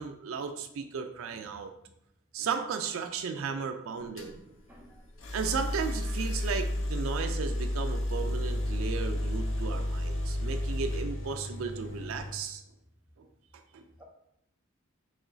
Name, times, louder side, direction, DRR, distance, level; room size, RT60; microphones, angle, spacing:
voice 1, 0.0-1.7 2.3-4.4 5.3-12.6 13.2-13.3 13.7-13.8, right 5 dB, 75° right, 7 dB, 0.4 m, -35 dB
sound 1, 4.2-4.3 5.2-12.3, left 1 dB, 65° left, 0.7 m, -32 dB
voice 2, 4.7-5.2 14.0-14.1, right 1 dB, 10° right, -2 dB, 0.6 m, -56 dB
4.8 x 3.0 x 2.6 m, 0.78 s
head